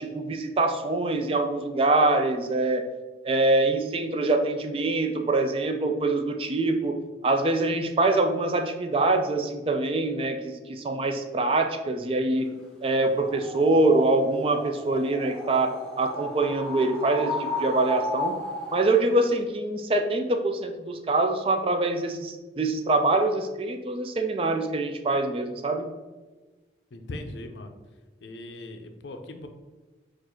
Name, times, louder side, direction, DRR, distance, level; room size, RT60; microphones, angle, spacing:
voice 1, 0.0-2.8 3.2-7.0 7.2-12.5 12.8-18.4 18.7-25.9, right 2 dB, 30° right, 5 dB, 0.3 m, -24 dB
sound 1, 13.2-18.9, left 1 dB, 5° left, 0.7 m, -34 dB
voice 2, 26.9-27.7 28.2-29.5, left 2 dB, 75° left, 6 dB, 0.5 m, -39 dB
4.5 x 2.5 x 4.3 m, 1.2 s
head